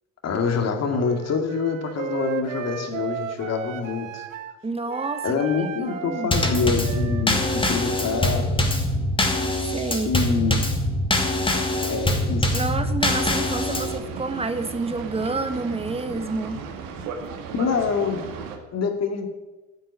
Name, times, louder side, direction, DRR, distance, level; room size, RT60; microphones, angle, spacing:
voice 1, 0.2-4.3 5.2-8.5 10.1-10.6 11.8-12.6 17.6-18.2 18.7-19.3, left 5 dB, 40° left, 4 dB, 2.2 m, -26 dB
Wind instrument woodwind instrument, 1.0-4.6 4.9-8.6, right 9 dB, 80° right, 0.9 m, -35 dB
voice 2, 4.6-5.2 5.6-6.3 9.6-10.1 12.5-16.6, right 3 dB, 15° right, 9 dB, 1.6 m, -29 dB
Drum kit / Snare drum / Bass drum, 6.3-14.0, left 1 dB, 15° left, 2.4 m, -23 dB
Boat Water vehicle, 13.4-18.6, right 5 dB, 60° right, 2.0 m, -36 dB
9.8 x 8.8 x 9.6 m, 1.1 s
figure-of-eight pair, 60°, 38 cm